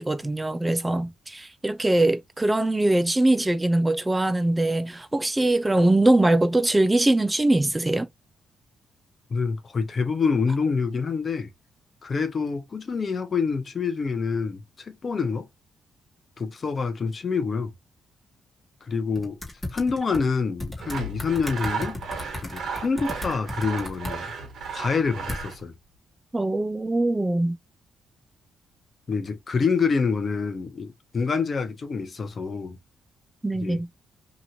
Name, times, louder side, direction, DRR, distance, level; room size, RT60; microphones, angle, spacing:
voice 1, 0.0-8.1 26.3-27.6 33.4-33.9, right 2 dB, 15° right, 0.4 m, -22 dB
voice 2, 9.3-11.5 12.0-15.5 16.4-17.7 18.8-19.4 19.7-22.0 22.4-24.3 24.7-25.7 29.1-32.8 33.6-33.8, left 5 dB, 45° left, 0.7 m, -26 dB
sound 1, 19.1-20.2 20.6-24.1 25.3-25.4, left 2 dB, 20° left, 1.2 m, -34 dB
Sawing, 20.8-25.6, right 5 dB, 65° right, 1.1 m, -34 dB
2.9 x 2.5 x 2.7 m
cardioid pair, 85°, 0 cm